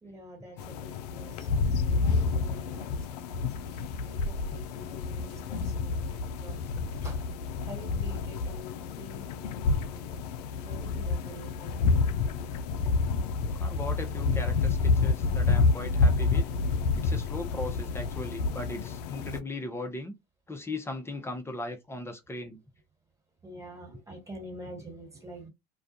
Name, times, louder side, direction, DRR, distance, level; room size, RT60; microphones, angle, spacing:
voice 1, 0.0-6.1 6.4-7.2 7.6-10.2 10.6-12.0 12.3-12.4 15.2-15.4 16.5-16.8 23.4-25.5, right 1 dB, 15° right, 1.6 m, -47 dB
sound 1, 0.6-19.4, left 4 dB, 80° left, 0.4 m, -29 dB
voice 2, 13.6-16.5 17.0-20.1 20.5-22.6, left 2 dB, 10° left, 0.7 m, -38 dB
2.3 x 2.2 x 2.6 m
hypercardioid pair, 85°, 20 cm